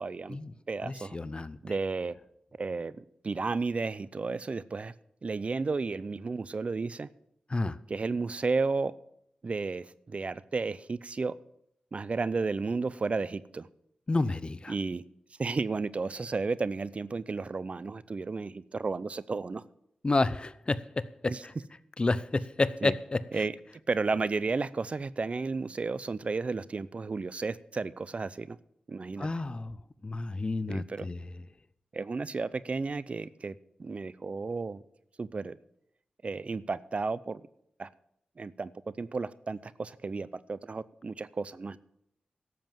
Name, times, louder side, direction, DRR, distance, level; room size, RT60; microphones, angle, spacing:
voice 1, 0.0-0.4 0.7-1.2 1.6-2.1 2.6-4.9 5.2-7.1 7.9-8.9 9.4-11.3 11.9-13.7 14.7-15.0 15.4-19.6 21.3-21.4 22.8-22.9 23.3-23.5 23.9-28.6 28.9-29.3 30.7-31.1 31.9-34.8 35.2-35.6 36.2-37.4 37.8-37.9 38.4-38.7 39.0-41.8, right 4 dB, 50° right, 0.5 m, -33 dB
voice 2, 0.8-1.7 7.5-7.8 14.1-14.7 20.0-21.5 22.0-23.2 29.2-29.8 30.0-31.3, left 2 dB, 35° left, 0.6 m, -30 dB
12.5 x 7.6 x 7.4 m
cardioid pair, 45°, 3 cm